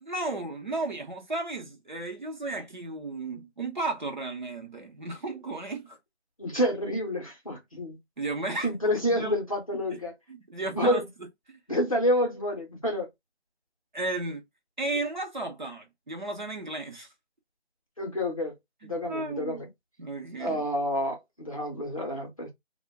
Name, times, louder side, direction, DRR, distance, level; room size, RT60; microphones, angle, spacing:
voice 1, 0.0-6.0 8.2-9.3 10.3-11.0 11.5-11.6 13.9-14.4 14.8-17.1 18.8-19.6 20.0-20.6, right 2 dB, 45° right, 0.8 m, -34 dB
voice 2, 6.4-8.0 8.6-10.1 10.6-11.0 11.7-13.1 18.0-18.5 18.8-19.7 20.4-22.5, left 1 dB, 30° left, 0.7 m, -28 dB
2.4 x 2.2 x 3.4 m
figure-of-eight pair, 170°, 34 cm